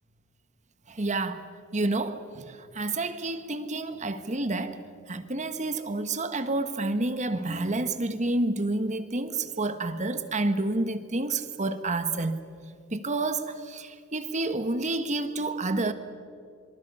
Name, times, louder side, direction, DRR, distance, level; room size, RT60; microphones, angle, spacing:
voice 1, 0.9-4.8 5.1-12.5 12.9-15.9, right 2 dB, 35° right, 1.4 m, -29 dB
27.0 x 24.5 x 5.6 m
head